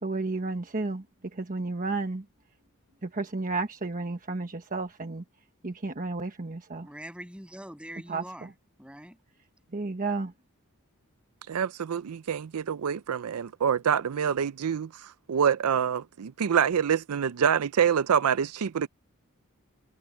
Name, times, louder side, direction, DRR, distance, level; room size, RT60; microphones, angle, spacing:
voice 1, 0.0-1.0 1.3-2.2 3.0-5.2 5.6-6.9 8.1-8.5 9.7-10.3, right 3 dB, 40° right, 1.2 m, -32 dB
voice 2, 6.8-8.5 8.8-9.2, right 1 dB, 5° right, 7.4 m, -43 dB
voice 3, 11.5-18.9, right 7 dB, 85° right, 0.5 m, -26 dB
head